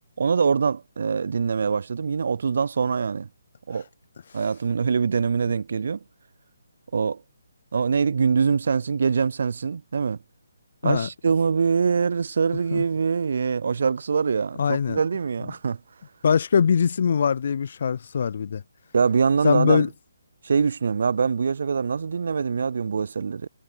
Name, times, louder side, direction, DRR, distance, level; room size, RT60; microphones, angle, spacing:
voice 1, 0.2-3.3 3.7-3.8 4.3-6.0 6.9-7.2 7.7-10.2 10.8-15.8 18.9-19.9 20.4-23.5, right 5 dB, 60° right, 0.4 m, -23 dB
voice 2, 14.6-15.0 16.2-18.6 19.4-19.9, left 6 dB, 55° left, 0.4 m, -22 dB
figure-of-eight pair, 150°, 0 cm